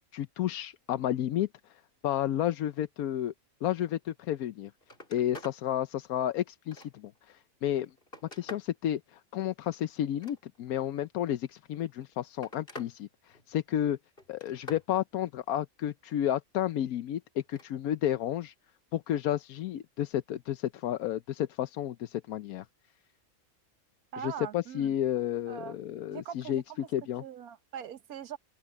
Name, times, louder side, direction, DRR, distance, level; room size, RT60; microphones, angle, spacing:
voice 1, 0.1-1.5 2.0-3.3 3.6-4.7 5.1-7.9 8.3-14.0 14.3-18.5 18.9-22.6 24.2-26.6 26.9-27.2, left 11 dB, 85° left, 1.2 m, -31 dB
Telephone, 4.5-4.6 4.8-5.6 6.1-7.2 7.7-8.8 10.0-10.8 11.8-13.0 13.3-13.8 14.2-14.9 17.4-17.7 19.1-19.2, left 1 dB, 40° left, 4.1 m, -48 dB
voice 2, 24.1-24.9 25.5-25.8 26.1-26.6 27.2-28.4, right 9 dB, 90° right, 1.5 m, -41 dB
open air
omnidirectional pair, 1.5 m